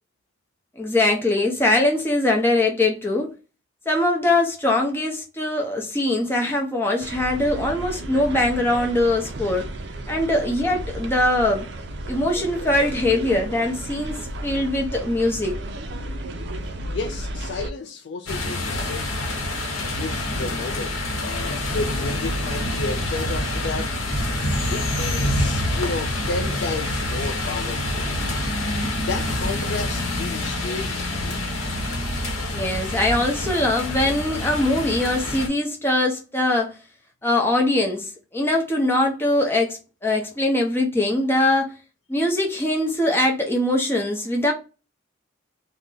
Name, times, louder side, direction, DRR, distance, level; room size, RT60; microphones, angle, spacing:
voice 1, 0.8-3.3 3.9-9.6 10.1-11.7 12.1-15.6 32.5-36.8 37.2-41.7 42.1-44.5, left 1 dB, 10° left, 0.6 m, -22 dB
sound 1, 7.0-17.7, right 1 dB, 55° right, 0.4 m, -33 dB
voice 2, 16.9-19.1 19.8-23.9 24.7-28.2 29.0-31.4, left 3 dB, 55° left, 0.3 m, -32 dB
sound 2, 18.3-35.5, left 1 dB, 85° left, 0.9 m, -26 dB
2.5 x 2.1 x 3.7 m
head